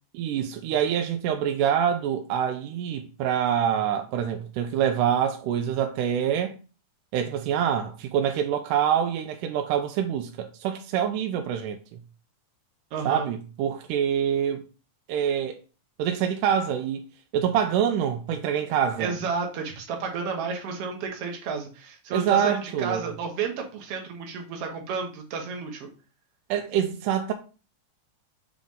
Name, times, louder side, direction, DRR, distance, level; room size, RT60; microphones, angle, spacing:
voice 1, 0.1-6.6 7.1-12.0 13.0-14.6 15.1-15.6 16.0-17.0 17.3-19.1 22.1-23.1 26.5-27.3, right 9 dB, 85° right, 2.1 m, -25 dB
voice 2, 12.9-13.3 19.0-25.9, right 5 dB, 60° right, 2.0 m, -31 dB
7.3 x 3.9 x 3.6 m
omnidirectional pair, 3.6 m